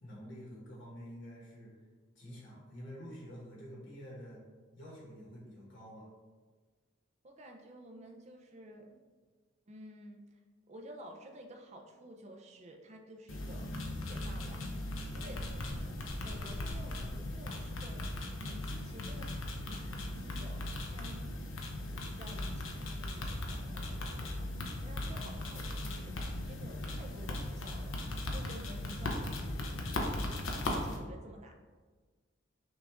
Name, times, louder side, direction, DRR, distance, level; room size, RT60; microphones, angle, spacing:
voice 1, 0.0-1.7 2.1-4.4 4.7-6.1 15.5-15.8, equal, 60° left, -5 dB, 1.3 m, -48 dB
voice 2, 7.2-9.0 9.7-10.2 10.7-14.7 15.1-15.9 16.2-18.0 18.4-19.3 19.7-20.6 20.9-21.2 22.0-24.5 24.8-26.1 26.4-27.9 28.3-29.4 29.9-30.3 30.7-31.5, right 1 dB, 35° right, 2 dB, 0.5 m, -51 dB
sound 1, 13.3-31.0, left 1 dB, 85° left, 0.7 m, -38 dB
5.9 x 2.5 x 3.5 m, 1.4 s
head